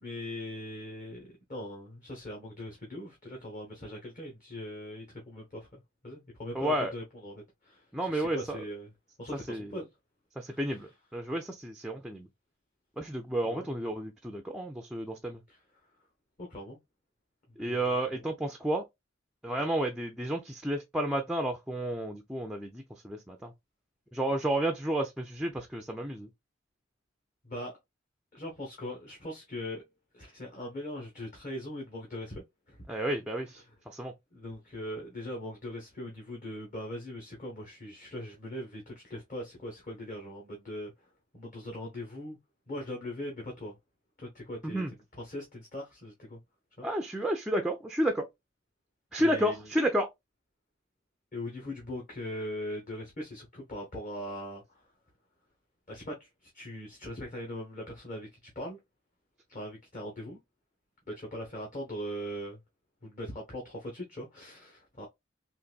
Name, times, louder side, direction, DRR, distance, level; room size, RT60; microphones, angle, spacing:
voice 1, 0.0-7.8 8.1-8.9 9.2-9.9 10.4-10.8 13.4-13.7 15.5-15.6 16.4-16.8 17.6-17.9 18.1-18.2 27.4-27.7 28.3-29.9 30.1-32.8 34.3-40.9 41.3-42.4 42.7-43.8 44.2-44.8 45.2-46.4 46.8-47.3 49.2-49.5 51.3-54.8 55.9-58.8 59.5-60.4 61.1-62.6 63.0-65.1, left 1 dB, 40° left, 1.0 m, -40 dB
voice 2, 6.5-6.9 7.9-8.6 9.3-9.8 10.4-12.3 13.0-15.4 17.6-18.8 19.4-23.5 24.1-26.3 32.9-34.1 44.6-44.9 46.8-48.3 49.1-50.1, right 1 dB, 5° right, 0.3 m, -31 dB
3.9 x 2.5 x 2.3 m
head